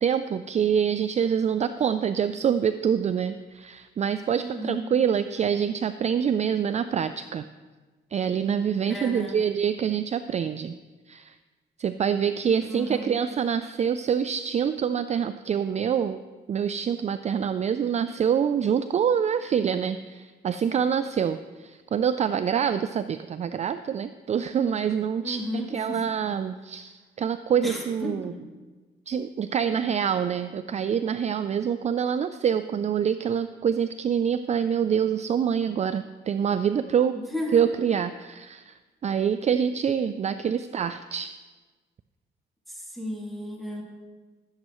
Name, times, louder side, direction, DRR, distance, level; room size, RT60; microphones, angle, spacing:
voice 1, 0.0-7.5 8.1-10.7 11.1-11.3 11.8-16.2 16.5-28.3 29.1-37.1 37.5-41.3, right 8 dB, 35° right, 11 dB, 0.4 m, -26 dB
voice 2, 4.4-4.9 8.8-9.4 12.6-13.2 25.2-26.0 27.6-28.4 37.1-37.6 42.7-43.8, equal, ahead, -4 dB, 3.0 m, -34 dB
16.0 x 7.6 x 3.0 m, 1.3 s
cardioid pair, 90°, 20 cm